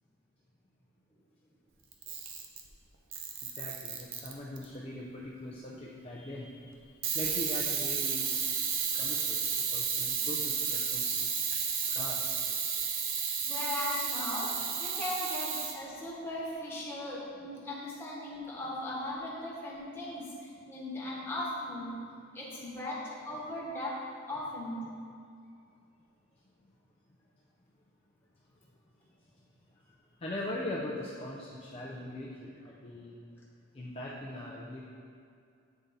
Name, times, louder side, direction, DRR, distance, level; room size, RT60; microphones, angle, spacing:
Camera, 1.9-2.7 3.1-4.6 7.0-15.8, right 6 dB, 65° right, 0.7 m, -32 dB
voice 1, 3.5-6.7 7.1-8.3 8.9-9.4 9.7-11.3 11.8-12.4 30.2-33.1 33.7-34.9, left 1 dB, 30° left, -5 dB, 0.5 m, -41 dB
voice 2, 13.4-14.5 14.8-22.1 22.3-24.0 24.3-24.9, left 1 dB, 10° left, -7 dB, 1.3 m, -38 dB
8.1 x 3.8 x 4.0 m, 2.4 s
head